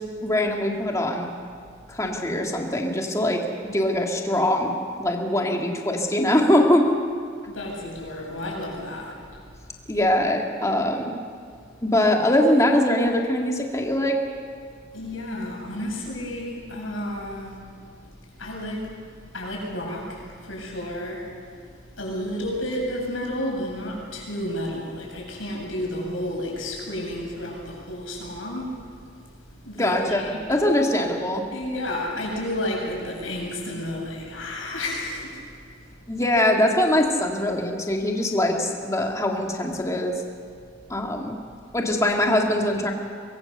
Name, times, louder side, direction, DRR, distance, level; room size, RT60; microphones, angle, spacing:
voice 1, 0.2-1.3 1.9-4.7 5.0-6.9 9.9-11.1 11.8-14.2 29.7-31.4 36.1-40.2 40.9-41.3 41.7-42.9, left 1 dB, 15° left, 1 dB, 2.3 m, -22 dB
voice 2, 7.5-9.4 9.9-10.0 14.9-21.7 22.0-29.3 29.6-30.4 31.5-36.2, left 1 dB, 90° left, -2 dB, 7.7 m, -32 dB
24.0 x 22.5 x 6.8 m, 2.1 s
head